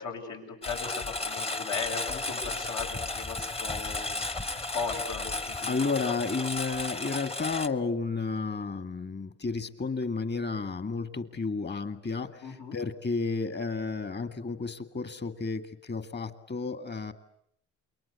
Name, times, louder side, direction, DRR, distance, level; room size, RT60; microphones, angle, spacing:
voice 1, 0.0-4.3 4.7-6.2 12.4-12.8, left 5 dB, 75° left, 1 dB, 7.3 m, -37 dB
Engine, 0.6-7.7, left 2 dB, 20° left, 1.1 m, -34 dB
sound 1, 0.7-6.5, left 5 dB, 60° left, 4.8 m, -48 dB
voice 2, 5.6-17.1, left 4 dB, 35° left, 10 dB, 2.0 m, -32 dB
28.5 x 22.5 x 8.3 m, 0.74 s
cardioid pair, 90°, 30 cm